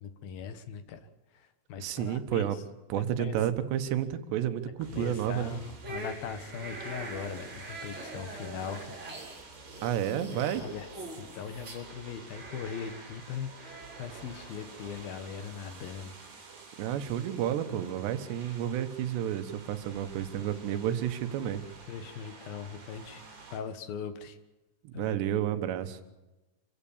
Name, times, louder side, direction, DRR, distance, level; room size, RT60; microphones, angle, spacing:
voice 1, 0.0-1.0 1.7-2.5 3.2-3.4 4.9-8.9 10.3-10.9 11.4-16.1 21.9-24.4 24.9-25.2, left 7 dB, 65° left, 10 dB, 3.0 m, -40 dB
voice 2, 1.8-2.6 2.9-5.6 9.8-10.6 16.8-21.6 24.9-26.0, right 10 dB, 85° right, 10 dB, 3.4 m, -31 dB
sound 1, 4.8-23.6, right 4 dB, 55° right, 5.8 m, -50 dB
sound 2, 5.8-15.0, right 2 dB, 30° right, 5.0 m, -44 dB
27.0 x 15.5 x 7.3 m, 1.1 s
omnidirectional pair, 4.8 m